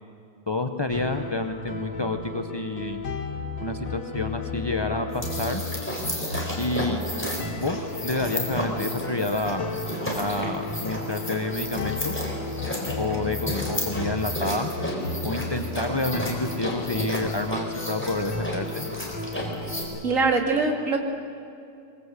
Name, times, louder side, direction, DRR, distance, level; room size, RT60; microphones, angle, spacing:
voice 1, 0.5-3.0 3.6-5.6 6.6-7.0 7.6-9.7 10.2-12.1 13.0-14.7 15.2-18.9, left 2 dB, 40° left, 5 dB, 0.3 m, -29 dB
sound 1, 0.9-20.0, left 2 dB, 80° left, 2.7 m, -34 dB
sound 2, 5.1-19.8, left 1 dB, 5° left, 4.0 m, -33 dB
voice 2, 20.0-21.0, right 3 dB, 45° right, 2 dB, 2.7 m, -22 dB
22.5 x 22.0 x 8.2 m, 2.5 s
omnidirectional pair, 1.9 m